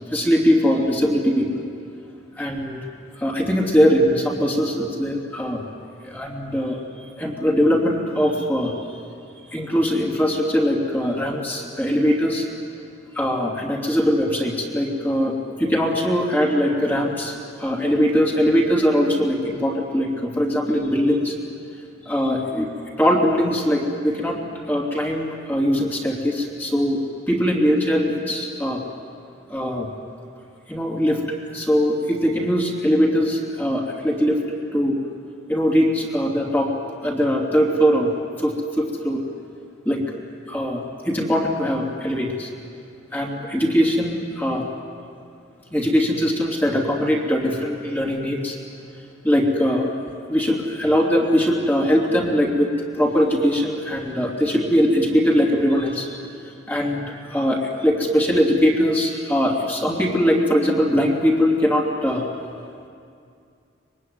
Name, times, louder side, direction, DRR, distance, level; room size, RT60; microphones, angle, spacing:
voice 1, 0.1-1.6 2.4-2.8 3.2-5.6 6.0-6.8 7.2-8.8 9.5-12.5 13.1-21.3 22.0-22.7 23.0-24.4 24.7-28.8 29.5-29.9 30.7-34.4 34.7-35.0 35.5-36.7 37.0-38.1 38.4-39.3 39.8-40.0 40.5-42.5 43.1-44.7 45.7-48.6 49.2-49.9 50.3-56.2 56.7-62.3, equal, 10° left, -2 dB, 3.0 m, -21 dB
25.0 x 22.5 x 9.6 m, 2.4 s
head